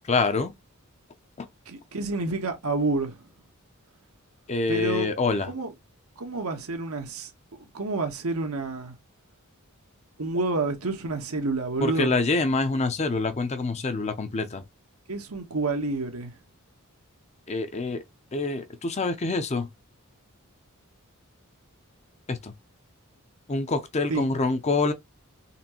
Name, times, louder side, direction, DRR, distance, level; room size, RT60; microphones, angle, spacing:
voice 1, 0.1-0.5 4.5-5.5 11.8-14.6 17.5-18.0 18.3-19.7 22.3-22.5 23.5-24.9, left 3 dB, 30° left, 0.5 m, -26 dB
voice 2, 1.7-3.2 4.7-5.1 5.5-5.7 6.2-7.3 7.7-8.9 10.2-12.2 15.1-16.3 24.1-24.2, right 3 dB, 80° right, 1.1 m, -29 dB
4.2 x 3.1 x 2.9 m
head